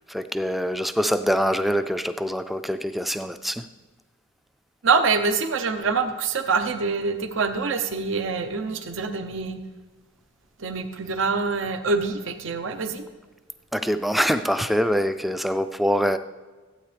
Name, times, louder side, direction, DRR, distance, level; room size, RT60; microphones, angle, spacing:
voice 1, 0.1-3.6 13.7-16.2, equal, ahead, 0.3 m, -24 dB
voice 2, 4.8-9.6 10.6-13.0, right 4 dB, 80° right, 0.8 m, -25 dB
15.5 x 8.8 x 3.3 m
head